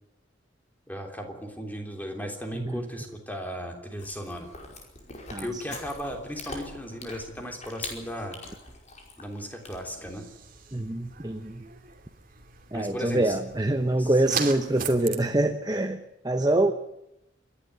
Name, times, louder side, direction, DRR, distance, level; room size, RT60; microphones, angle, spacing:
voice 1, 0.9-4.5 5.4-8.4 9.2-10.2 12.7-13.4 14.0-14.2, equal, 10° left, 3 dB, 3.3 m, -36 dB
Chewing mastication, 4.0-10.1, left 3 dB, 35° left, 5.0 m, -43 dB
voice 2, 5.3-5.6 10.7-11.6 12.7-16.7, right 1 dB, 20° right, 8 dB, 0.9 m, -25 dB
sound 1, 10.1-15.2, right 7 dB, 45° right, 2.6 m, -38 dB
27.0 x 11.5 x 9.5 m, 0.86 s
head